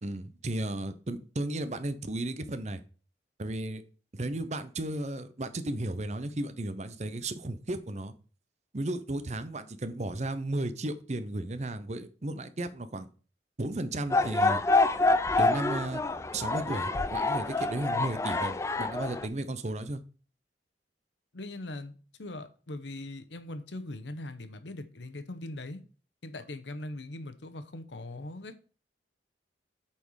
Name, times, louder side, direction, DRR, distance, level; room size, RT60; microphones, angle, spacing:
voice 1, 0.0-2.8 3.4-3.8 4.1-8.1 8.7-13.1 13.6-14.6 15.4-16.0 16.3-20.0, right 1 dB, 40° right, 0.7 m, -34 dB
sound 1, 14.1-19.3, left 3 dB, 15° left, 0.3 m, -27 dB
voice 2, 21.3-21.9 22.2-25.8 26.2-28.6, left 2 dB, 90° left, 0.9 m, -40 dB
8.5 x 4.4 x 4.8 m
head